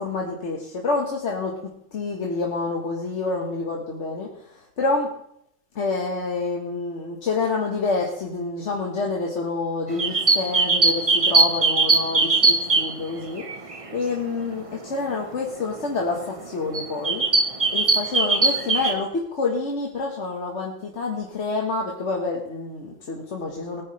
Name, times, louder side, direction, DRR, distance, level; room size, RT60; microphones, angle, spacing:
voice 1, 0.0-1.5 1.9-5.1 5.7-17.2 17.7-23.8, left 3 dB, 70° left, -1 dB, 1.7 m, -28 dB
sound 1, 9.9-13.9 14.4-14.6 15.6-15.7 16.2-16.5 16.7-18.9, right 3 dB, 30° right, 1.0 m, -20 dB
19.0 x 9.7 x 3.3 m, 0.73 s
omnidirectional pair, 1.3 m